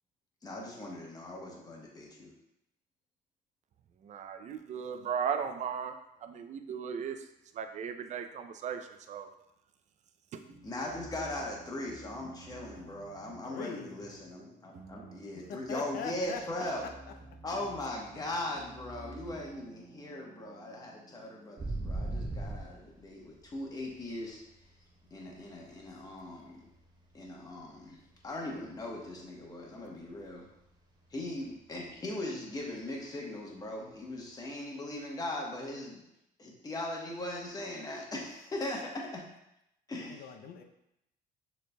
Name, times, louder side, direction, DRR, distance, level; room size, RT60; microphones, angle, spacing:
voice 1, 0.4-2.3 10.6-16.8 17.4-24.4 25.1-26.7 27.1-28.0 28.2-30.5 31.1-36.0 36.4-39.2 39.9-40.2, left 1 dB, 20° left, -2 dB, 1.1 m, -39 dB
voice 2, 4.0-7.2 7.5-9.3 10.3-10.4, right 7 dB, 45° right, 7 dB, 0.4 m, -36 dB
sound 1, 10.5-23.3, right 3 dB, 75° right, 1.1 m, -53 dB
voice 3, 13.4-14.0 15.3-17.4 40.0-40.6, left 5 dB, 65° left, 6 dB, 0.6 m, -42 dB
sound 2, 21.6-24.9 25.2-27.5 27.8-28.1 28.4-30.4 30.7-30.8 31.1-31.5 31.8-31.9 34.1-34.2, right 2 dB, 25° right, 0.8 m, -39 dB
6.5 x 3.3 x 2.2 m, 0.84 s
cardioid pair, 110°, 17 cm